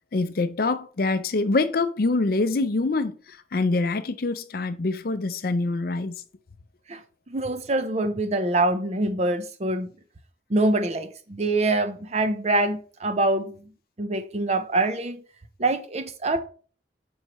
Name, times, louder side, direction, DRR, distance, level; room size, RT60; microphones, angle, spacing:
voice 1, 0.1-6.2, left 3 dB, 55° left, 0.5 m, -25 dB
voice 2, 7.3-9.9 10.5-13.6 14.0-15.2 15.6-16.4, right 2 dB, 40° right, 0.7 m, -25 dB
7.5 x 5.5 x 3.0 m
head